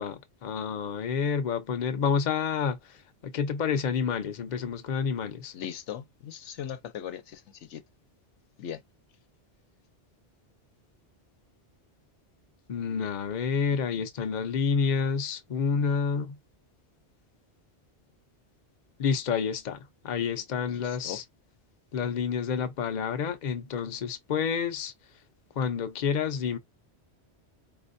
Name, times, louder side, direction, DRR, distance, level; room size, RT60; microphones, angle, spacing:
voice 1, 0.0-2.8 3.2-5.5 12.7-16.3 19.0-19.8 20.0-21.2 21.9-24.9 25.6-26.6, left 6 dB, 45° left, 0.7 m, -29 dB
voice 2, 5.5-7.4 7.7-7.8 8.6-8.8 13.7-14.1 20.7-21.2, left 9 dB, 85° left, 1.0 m, -39 dB
4.3 x 2.5 x 2.6 m
omnidirectional pair, 1.2 m